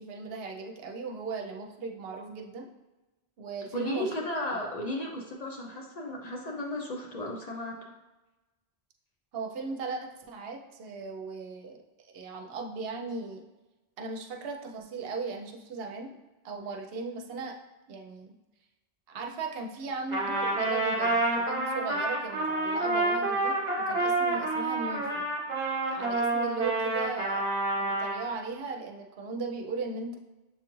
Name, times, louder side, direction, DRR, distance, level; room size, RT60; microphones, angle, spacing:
voice 1, 0.0-2.7 3.4-4.1 9.3-13.4 14.0-16.1 16.4-17.6 17.9-18.3 19.1-23.6 23.9-25.3 25.9-27.5 27.8-30.2, right 4 dB, 70° right, 2 dB, 0.8 m, -37 dB
voice 2, 3.7-7.8, left 1 dB, 50° left, 0 dB, 0.5 m, -34 dB
Trumpet, 20.1-28.2, right 2 dB, 45° right, 0.9 m, -28 dB
6.8 x 2.4 x 3.0 m, 1.1 s
omnidirectional pair, 1.1 m